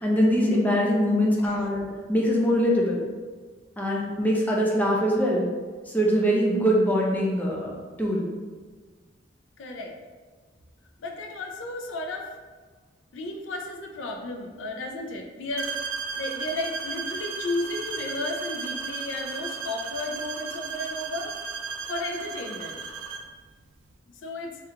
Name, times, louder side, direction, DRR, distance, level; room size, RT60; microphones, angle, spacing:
voice 1, 0.0-3.0 3.8-5.4 5.9-8.3, equal, 10° left, -3 dB, 0.5 m, -23 dB
voice 2, 9.6-10.0 11.0-12.3 13.1-15.7 16.2-21.3 21.9-22.8 24.2-24.6, left 2 dB, 75° left, 2 dB, 0.4 m, -33 dB
sound 1, 15.6-23.3, right 5 dB, 75° right, 0.3 m, -34 dB
3.4 x 2.4 x 2.7 m, 1.4 s
head